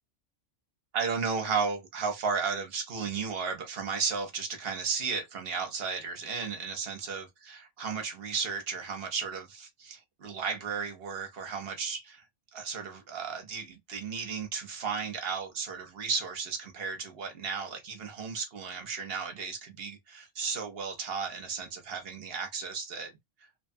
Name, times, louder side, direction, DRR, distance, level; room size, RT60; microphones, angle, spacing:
voice 1, 0.9-12.2 12.5-23.1, right 5 dB, 55° right, 0.9 m, -34 dB
2.9 x 2.2 x 2.6 m
omnidirectional pair, 1.3 m